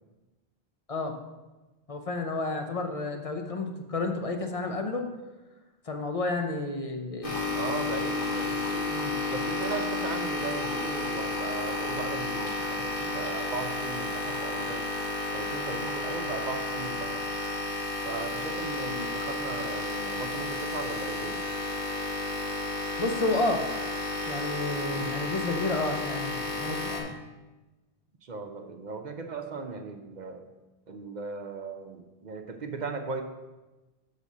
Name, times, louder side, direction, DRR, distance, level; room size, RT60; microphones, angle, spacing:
voice 1, 1.9-5.1 5.9-7.5 8.9-9.2 23.0-23.7 24.3-27.2, left 2 dB, 40° left, 4 dB, 0.7 m, -31 dB
sound 1, 7.2-27.0, left 2 dB, 60° left, 1.5 m, -32 dB
voice 2, 7.5-8.9 9.3-14.9 15.3-17.2 18.0-21.4 24.9-25.0 28.2-30.4 30.9-33.2, right 4 dB, 50° right, 5 dB, 0.7 m, -37 dB
6.8 x 4.1 x 6.1 m, 1.1 s
omnidirectional pair, 1.1 m